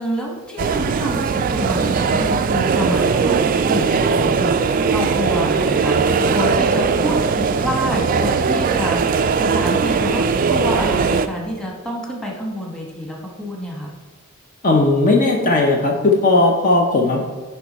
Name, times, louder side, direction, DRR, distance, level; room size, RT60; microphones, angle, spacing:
voice 1, 0.0-3.4 3.7-13.9, equal, 5° left, -2 dB, 1.2 m, -27 dB
sound 1, 0.6-11.3, right 5 dB, 40° right, 0.3 m, -19 dB
voice 2, 14.6-17.2, left 2 dB, 40° left, 0 dB, 0.6 m, -16 dB
9.5 x 3.4 x 4.1 m, 1.3 s
head